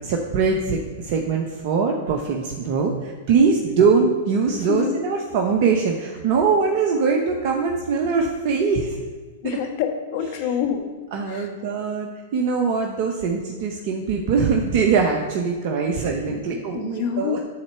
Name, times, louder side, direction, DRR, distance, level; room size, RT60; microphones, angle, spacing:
voice 1, 0.0-9.0 10.3-10.6 11.1-17.4, right 5 dB, 50° right, 2 dB, 0.9 m, -22 dB
voice 2, 4.6-4.9 8.4-8.5 9.4-10.9 11.3-11.5 16.3-17.4, left 8 dB, 55° left, 4 dB, 1.4 m, -27 dB
9.8 x 4.2 x 6.9 m, 1.5 s
hypercardioid pair, 110°, 0 cm